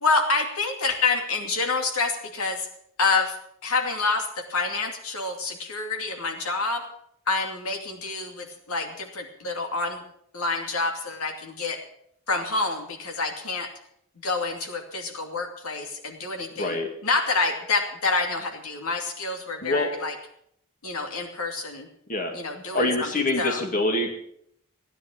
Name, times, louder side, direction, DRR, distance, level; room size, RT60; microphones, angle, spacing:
voice 1, 0.0-2.7 3.0-3.4 3.6-6.9 7.3-10.0 10.3-11.8 12.3-13.7 14.2-16.8 17.0-20.1 20.8-21.9 22.3-23.1 23.4-23.6, left 3 dB, 90° left, 4 dB, 2.6 m, -27 dB
voice 2, 22.7-24.1, left 2 dB, 40° left, 3 dB, 2.2 m, -25 dB
16.5 x 10.0 x 7.3 m, 0.70 s
head